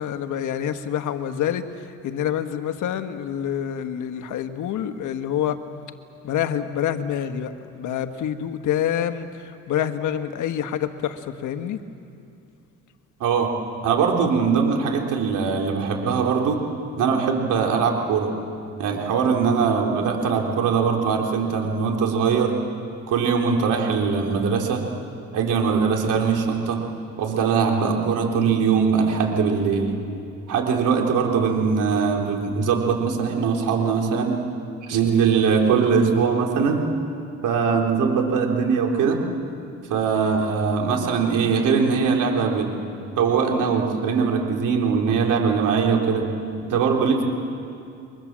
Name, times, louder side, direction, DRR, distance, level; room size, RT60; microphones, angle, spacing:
voice 1, 0.0-5.6 6.2-11.8, left 9 dB, 80° left, 8 dB, 1.5 m, -27 dB
voice 2, 13.2-13.5 13.8-16.6 17.0-18.3 18.8-22.6 23.1-24.8 25.3-26.8 27.2-30.0 30.5-34.3 34.8-36.8 37.4-39.2 39.9-42.7 43.2-46.3 46.6-47.2, right 5 dB, 85° right, 1 dB, 3.7 m, -21 dB
29.5 x 23.5 x 7.5 m, 2.5 s
cardioid pair, 90°, 30 cm